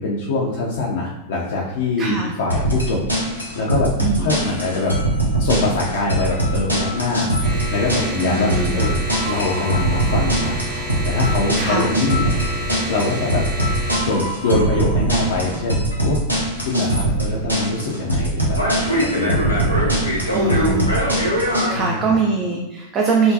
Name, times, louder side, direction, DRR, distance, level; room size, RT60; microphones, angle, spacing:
voice 1, 0.0-3.0 3.6-3.9 4.2-4.9 5.4-7.3 7.7-8.9 9.3-10.6 11.0-13.4 14.0-16.2 16.6-18.6 18.9-19.6 20.4-20.9 21.7-22.2, left 3 dB, 60° left, -4 dB, 0.5 m, -23 dB
voice 2, 2.0-2.4 4.0-4.3 8.2-8.8 11.6-11.9 20.3-21.0 21.7-23.3, right 4 dB, 30° right, -1 dB, 0.4 m, -22 dB
sound 1, 2.5-21.7, right 1 dB, 90° right, 0.6 m, -21 dB
sound 2, 7.4-14.0, equal, 55° right, 1.4 m, -30 dB
3.5 x 2.2 x 2.6 m, 0.97 s
figure-of-eight pair, 90°, 0 cm